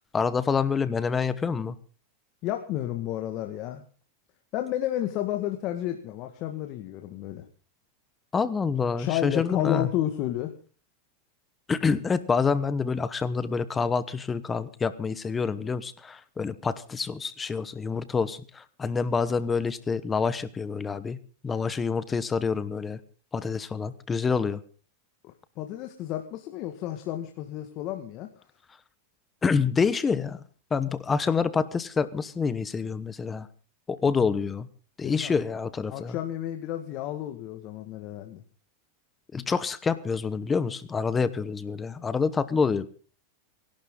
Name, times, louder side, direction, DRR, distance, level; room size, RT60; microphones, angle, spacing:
voice 1, 0.1-1.8 8.3-9.9 11.7-21.2 21.4-23.0 23.3-24.6 29.4-30.4 30.7-33.5 33.9-34.7 35.0-36.2 39.3-42.9, left 5 dB, 20° left, 15 dB, 1.0 m, -27 dB
voice 2, 2.4-3.8 4.5-7.5 9.0-10.5 25.2-28.4 35.0-35.3 35.9-38.4, left 13 dB, 50° left, 5 dB, 1.9 m, -31 dB
27.0 x 11.5 x 3.9 m, 0.40 s
hypercardioid pair, 110°, 0 cm